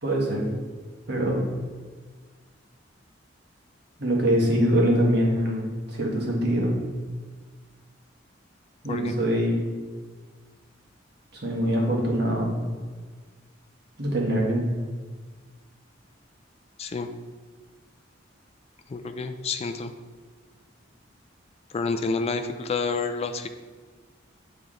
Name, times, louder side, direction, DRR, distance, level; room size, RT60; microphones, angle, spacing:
voice 1, 0.0-0.5 1.1-1.5 4.0-6.8 8.8-9.6 11.3-12.5 14.0-14.6, equal, 60° right, -2 dB, 1.5 m, -23 dB
voice 2, 16.8-17.1 18.9-19.9 21.7-23.5, left 4 dB, 35° left, 7 dB, 0.3 m, -29 dB
8.8 x 3.5 x 3.7 m, 1.5 s
head